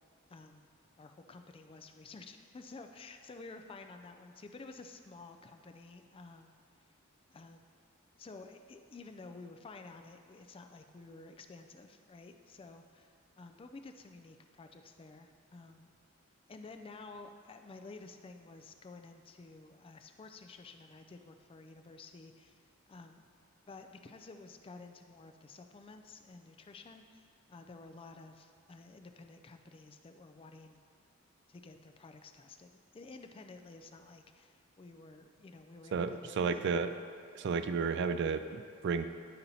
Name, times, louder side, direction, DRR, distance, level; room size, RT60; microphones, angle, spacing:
voice 1, 0.3-0.7 1.0-6.5 7.3-7.6 8.2-15.9 16.5-22.6 22.9-23.2 23.7-30.8 31.5-36.6, left 3 dB, 25° left, 6 dB, 0.3 m, -52 dB
voice 2, 35.9-36.9 37.3-39.1, right 5 dB, 55° right, 10 dB, 0.3 m, -32 dB
9.8 x 4.2 x 4.0 m, 2.2 s
head